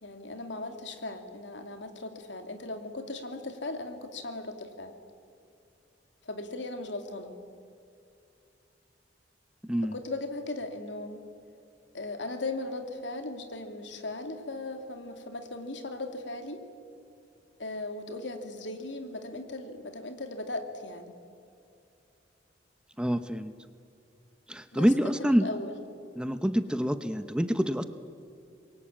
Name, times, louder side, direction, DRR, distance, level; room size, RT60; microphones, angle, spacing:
voice 1, 0.0-4.9 6.2-7.3 9.9-11.2 11.9-16.6 17.6-21.1 24.7-24.9 25.2-25.7, left 2 dB, 75° left, 6 dB, 2.7 m, -38 dB
voice 2, 9.6-9.9 23.0-23.5 24.5-25.5 26.2-27.8, equal, 5° right, 10 dB, 0.8 m, -26 dB
26.5 x 22.5 x 8.8 m, 2.5 s
head